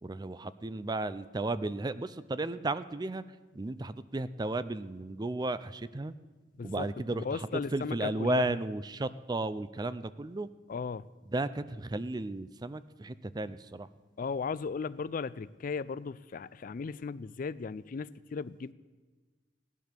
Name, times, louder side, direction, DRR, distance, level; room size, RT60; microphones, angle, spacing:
voice 1, 0.0-3.2 3.5-6.1 6.6-10.5 11.3-13.9, right 2 dB, 20° right, 14 dB, 0.4 m, -34 dB
voice 2, 7.1-8.4 10.7-11.1 14.2-18.7, left 5 dB, 45° left, 18 dB, 0.4 m, -36 dB
16.5 x 11.0 x 6.7 m, 1.3 s
head